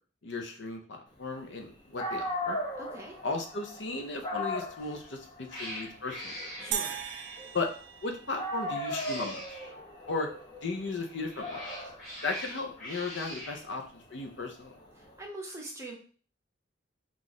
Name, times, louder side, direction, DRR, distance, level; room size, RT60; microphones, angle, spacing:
voice 1, 0.2-2.6 3.2-6.4 7.5-7.7 8.0-9.4 10.1-10.3 10.6-11.6 12.2-14.7, left 3 dB, 65° left, 3 dB, 0.6 m, -35 dB
Dog, 1.7-1.8 2.0-8.0 8.4-15.1, left 1 dB, 25° left, 0.7 m, -39 dB
voice 2, 2.8-3.1 6.6-7.0 15.0-15.9, right 1 dB, 15° right, 0 dB, 0.7 m, -43 dB
Cat, 4.8-5.1 5.5-7.5 8.6-9.7 11.0-13.6, equal, 45° left, 1.8 m, -43 dB
sound 1, 6.7-9.1, right 8 dB, 65° right, 0.3 m, -38 dB
3.0 x 2.4 x 3.9 m, 0.40 s
head